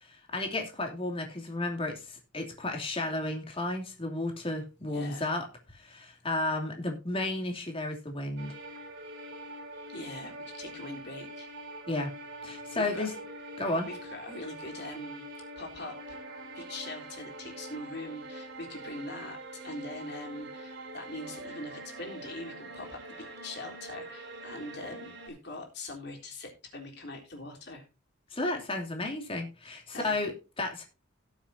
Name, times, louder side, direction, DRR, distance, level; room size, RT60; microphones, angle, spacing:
voice 1, 0.0-8.5 11.9-12.1 12.4-13.1 13.6-13.9 28.3-30.8, left 2 dB, 25° left, 3 dB, 2.8 m, -33 dB
voice 2, 4.9-5.3 9.9-11.5 12.8-13.1 13.8-15.2 15.6-16.0 16.6-27.8 29.9-30.2, left 2 dB, 55° left, 1 dB, 3.7 m, -42 dB
sound 1, 8.4-25.3, right 2 dB, 55° right, 3.4 m, -44 dB
18.0 x 7.2 x 2.7 m, 0.30 s
head